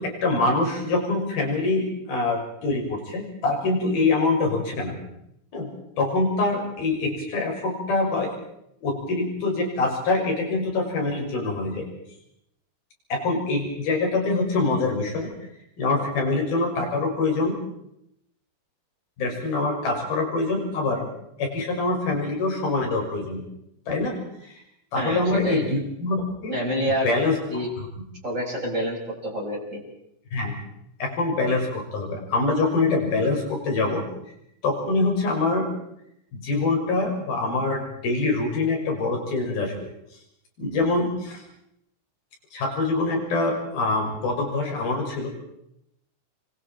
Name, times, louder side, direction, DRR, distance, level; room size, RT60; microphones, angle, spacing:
voice 1, 0.0-5.0 5.5-5.7 6.0-8.3 8.8-11.9 13.1-15.3 15.8-17.6 19.2-21.1 21.4-23.4 23.9-24.2 24.4-24.5 24.9-26.6 26.9-27.7 30.3-30.5 31.0-34.0 34.6-35.7 36.3-39.7 40.6-41.4 42.5-45.3, left 3 dB, 45° left, 0 dB, 7.8 m, -24 dB
voice 2, 24.9-25.6 26.5-27.1 27.5-27.7 28.2-29.8, equal, 15° right, -1 dB, 6.0 m, -27 dB
29.5 x 24.5 x 4.5 m, 0.76 s
omnidirectional pair, 5.9 m